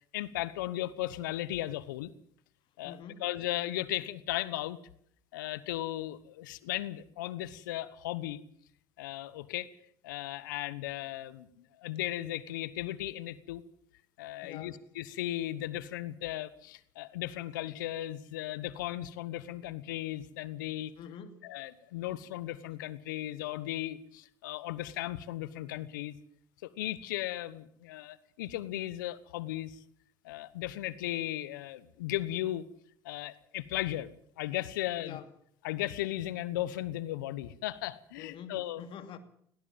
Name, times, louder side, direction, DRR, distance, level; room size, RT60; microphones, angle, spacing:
voice 1, 0.1-2.1 2.8-4.8 5.3-8.4 9.0-9.7 10.0-13.6 14.2-20.9 21.4-26.2 26.6-29.8 30.2-32.7 33.0-34.1 34.4-35.2 35.6-38.8, left 14 dB, 80° left, 17 dB, 1.2 m, -36 dB
voice 2, 2.8-3.3 14.4-14.8 21.0-21.4 35.0-35.2 38.2-39.2, left 7 dB, 60° left, 9 dB, 2.6 m, -46 dB
19.5 x 17.5 x 7.5 m, 0.66 s
hypercardioid pair, 65°, 10 cm